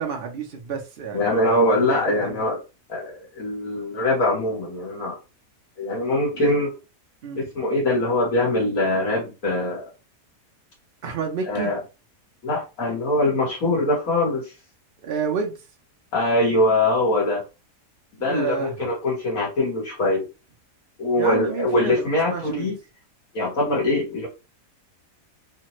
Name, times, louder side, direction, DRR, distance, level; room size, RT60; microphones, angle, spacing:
voice 1, 0.0-2.4 6.4-6.5 7.2-7.4 11.0-11.7 15.0-15.6 18.2-18.7 21.2-22.7 23.7-23.8, right 6 dB, 55° right, 0.6 m, -30 dB
voice 2, 1.1-2.6 2.9-5.2 5.8-6.7 7.3-9.8 11.5-11.8 12.4-14.5 16.1-17.4 18.2-20.3 21.0-22.7 23.3-24.3, left 1 dB, 60° left, 1.5 m, -22 dB
3.2 x 2.1 x 2.9 m
omnidirectional pair, 1.7 m